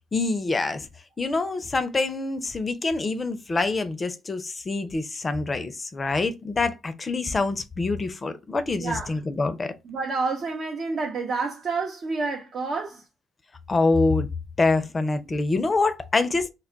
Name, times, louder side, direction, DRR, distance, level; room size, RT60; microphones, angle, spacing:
voice 1, 0.1-0.9 1.2-9.7 13.7-14.3 14.6-16.5, left 3 dB, 35° left, 0.5 m, -25 dB
voice 2, 8.8-9.1 9.8-13.0, right 4 dB, 55° right, 0.6 m, -29 dB
2.2 x 2.1 x 3.8 m
hypercardioid pair, 50°, 0 cm